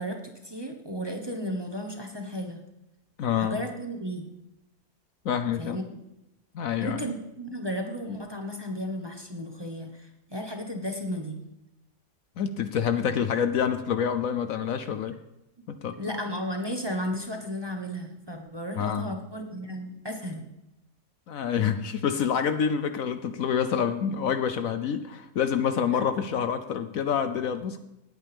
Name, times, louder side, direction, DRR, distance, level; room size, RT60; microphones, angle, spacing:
voice 1, 0.0-2.6 3.4-4.3 5.6-6.0 6.8-11.4 16.0-20.5, equal, 20° right, 3 dB, 1.1 m, -34 dB
voice 2, 3.2-3.6 5.2-5.8 6.5-7.1 12.4-15.2 15.7-16.0 18.8-19.0 21.3-27.8, left 7 dB, 65° left, 9 dB, 1.0 m, -27 dB
18.0 x 8.9 x 3.5 m, 0.92 s
omnidirectional pair, 1.7 m